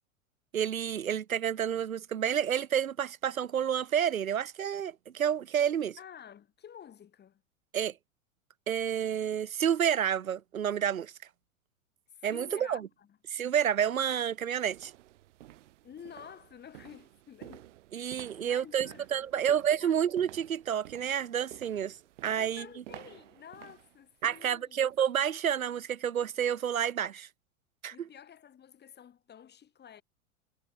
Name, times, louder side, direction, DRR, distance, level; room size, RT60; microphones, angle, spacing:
voice 1, 0.5-6.0 7.7-7.9 8.7-11.1 12.2-12.9 13.3-14.9 17.9-22.0 22.2-22.7 24.2-27.3 27.8-28.1, right 9 dB, 85° right, 0.8 m, -29 dB
voice 2, 6.0-7.4 12.1-13.2 15.8-20.0 22.3-24.8 27.9-30.0, left 9 dB, 25° left, 5.0 m, -51 dB
sound 1, 13.3-13.4 13.9-25.2 25.6-25.8 26.3-26.4, right 15 dB, 60° right, 6.6 m, -53 dB
figure-of-eight pair, 95°, 40 cm